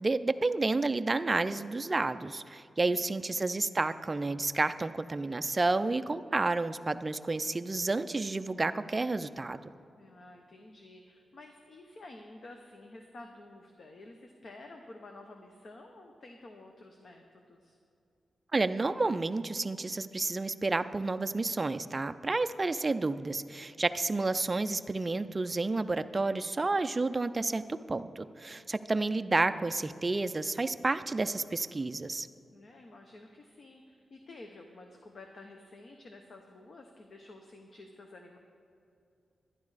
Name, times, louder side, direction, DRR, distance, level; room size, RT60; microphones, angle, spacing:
voice 1, 0.0-9.6 18.5-32.3, right 3 dB, 20° right, 11 dB, 0.3 m, -30 dB
voice 2, 2.9-3.3 10.0-17.8 28.5-28.7 29.1-29.3 32.5-38.4, left 2 dB, 45° left, 3 dB, 0.8 m, -51 dB
11.5 x 11.0 x 4.8 m, 2.6 s
wide cardioid pair, 175°, 0 cm